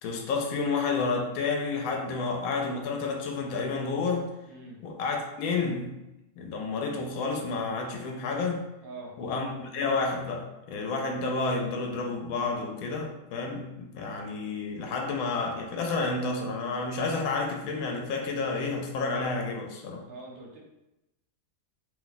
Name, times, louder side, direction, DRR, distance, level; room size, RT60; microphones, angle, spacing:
voice 1, 0.0-4.3 4.8-6.0 6.4-8.6 9.2-20.0, left 4 dB, 75° left, 1 dB, 1.0 m, -30 dB
voice 2, 4.4-4.8 8.8-9.2 20.1-20.6, right 3 dB, 50° right, -2 dB, 0.8 m, -43 dB
2.7 x 2.2 x 3.9 m, 0.93 s
omnidirectional pair, 1.5 m